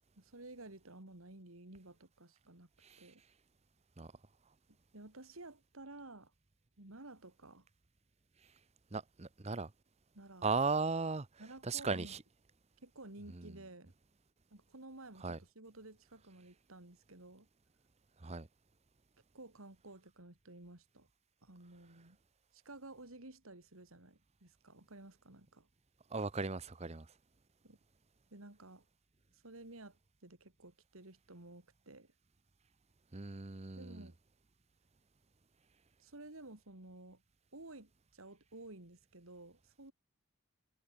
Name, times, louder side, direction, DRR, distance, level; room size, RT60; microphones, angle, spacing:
voice 1, 0.2-2.7 3.0-3.2 4.9-6.3 6.8-7.7 10.1-10.5 11.4-12.1 12.8-13.9 14.5-17.5 19.3-21.1 21.4-22.2 22.5-25.7 27.6-27.8 28.3-28.9 29.3-32.1 33.7-34.2 36.0-37.2 37.5-39.9, right 2 dB, 75° right, 2.9 m, -53 dB
voice 2, 8.9-9.7 10.4-11.3 11.6-12.2 13.3-13.5 15.2-15.4 18.2-18.5 26.1-27.1 33.1-34.1, right 4 dB, 30° right, 0.8 m, -37 dB
head